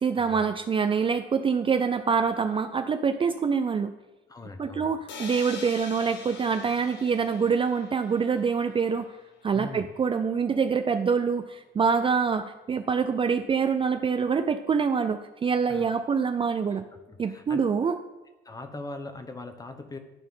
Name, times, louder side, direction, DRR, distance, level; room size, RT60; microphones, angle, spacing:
voice 1, 0.0-3.9 4.6-9.1 9.4-16.8 17.2-18.0, right 6 dB, 25° right, 8 dB, 0.4 m, -25 dB
voice 2, 4.3-5.0 9.5-9.9 15.7-16.0 16.7-17.6 18.4-20.0, left 3 dB, 20° left, 7 dB, 1.0 m, -41 dB
sound 1, 5.1-8.9, left 5 dB, 70° left, 1.3 m, -43 dB
11.5 x 4.4 x 5.5 m, 1.1 s
cardioid pair, 110°, 19 cm